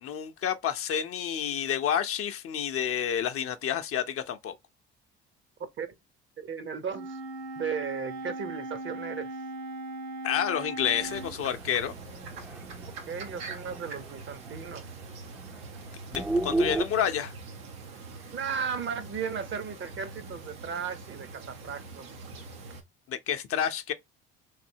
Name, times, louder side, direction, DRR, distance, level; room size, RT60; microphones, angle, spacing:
voice 1, 0.0-4.5 10.2-11.9 16.1-17.3 23.1-23.9, left 9 dB, 50° left, 0.6 m, -29 dB
voice 2, 6.4-7.2 7.6-9.3 13.1-14.8 18.3-22.1, right 6 dB, 40° right, 0.7 m, -35 dB
Wind instrument woodwind instrument, 6.9-11.3, right 2 dB, 60° right, 1.4 m, -38 dB
sound 1, 10.8-14.2 14.5-14.6 14.9-15.0 15.3-16.8, right 2 dB, 5° right, 0.4 m, -33 dB
sound 2, 11.0-22.8, right 4 dB, 90° right, 0.9 m, -44 dB
3.2 x 2.7 x 2.7 m
hypercardioid pair, 65°, 30 cm